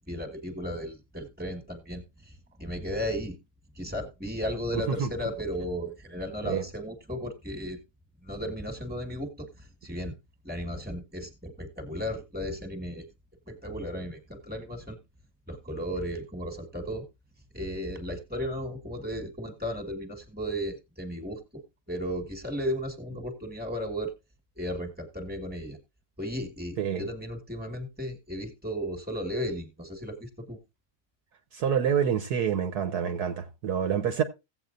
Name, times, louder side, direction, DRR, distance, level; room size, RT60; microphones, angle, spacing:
voice 1, 0.1-2.3 2.6-3.4 3.8-7.8 8.2-10.1 10.4-13.0 13.5-15.0 15.5-17.0 17.5-21.6 21.9-24.1 24.6-25.8 26.2-30.6, equal, 5° right, 1.5 m, -35 dB
voice 2, 4.7-5.1 6.4-6.6 26.8-27.0 31.5-34.2, right 8 dB, 65° right, 1.3 m, -27 dB
16.0 x 8.0 x 2.6 m
omnidirectional pair, 2.0 m